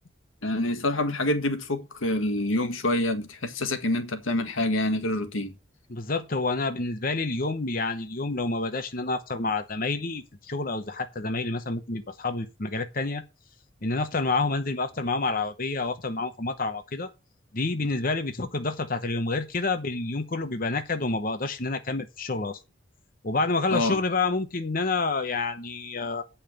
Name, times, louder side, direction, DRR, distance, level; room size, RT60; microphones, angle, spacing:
voice 1, 0.4-5.5 23.7-24.0, left 1 dB, 90° left, 1.6 m, -26 dB
voice 2, 5.9-13.2 13.8-17.1 17.5-22.6 23.2-26.2, left 3 dB, 45° left, 0.9 m, -28 dB
8.8 x 5.7 x 6.6 m
head